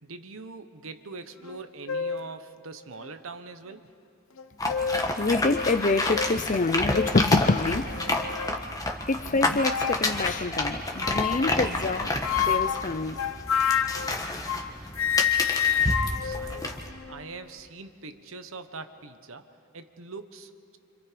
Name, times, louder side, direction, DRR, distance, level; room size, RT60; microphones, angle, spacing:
voice 1, 0.0-3.9 16.2-20.8, right 3 dB, 65° right, 1.2 m, -43 dB
sound 1, 1.4-1.6 1.9-2.3 3.0-3.1 4.4-5.1 5.5-5.7 6.1-6.3 6.9-7.2 7.9-8.6 9.6-10.1 11.0-11.6 12.2-14.7 14.9-17.3, left 8 dB, 65° left, 0.8 m, -28 dB
sound 2, 4.6-16.9, left 2 dB, 15° left, 1.5 m, -30 dB
voice 2, 5.2-8.1 9.1-13.3, left 3 dB, 35° left, 0.6 m, -26 dB
28.5 x 26.0 x 5.1 m
head